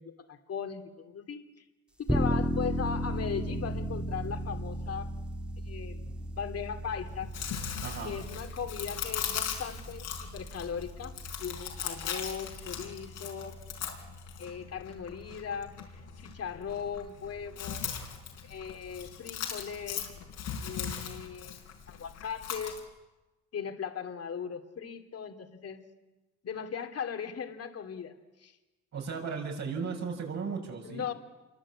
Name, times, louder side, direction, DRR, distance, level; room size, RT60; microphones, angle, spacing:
voice 1, 0.0-1.4 2.0-5.1 5.7-6.1 6.4-7.3 8.0-13.6 14.4-17.8 18.4-20.1 20.6-21.5 21.9-22.8 23.5-25.8 26.4-28.6 30.8-31.1, left 7 dB, 55° left, 6 dB, 2.6 m, -38 dB
sound 1, 2.1-12.8, equal, 5° right, 2.3 m, -35 dB
Chewing mastication, 7.1-22.8, left 8 dB, 90° left, 5.0 m, -39 dB
voice 2, 7.8-8.1 28.9-31.1, right 5 dB, 65° right, 0 dB, 6.9 m, -36 dB
27.0 x 23.5 x 8.7 m, 1.1 s
cardioid pair, 90°, 30 cm